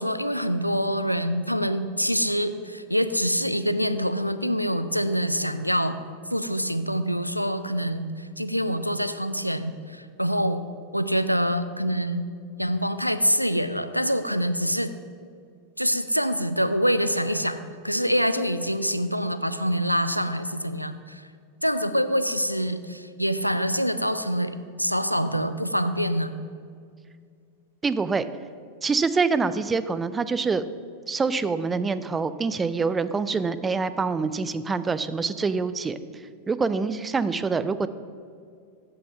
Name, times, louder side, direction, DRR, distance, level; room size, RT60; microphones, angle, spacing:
voice 1, 0.0-6.0 6.3-10.7 10.9-12.3 12.6-14.9 15.8-17.6 17.8-21.3 21.6-26.3, equal, 90° left, 11 dB, 0.3 m, -25 dB
voice 2, 27.8-28.3 28.8-30.7 31.1-36.0 36.5-37.9, right 4 dB, 15° right, 13 dB, 0.3 m, -25 dB
7.8 x 5.5 x 5.4 m, 2.3 s
figure-of-eight pair, 90°, 0 cm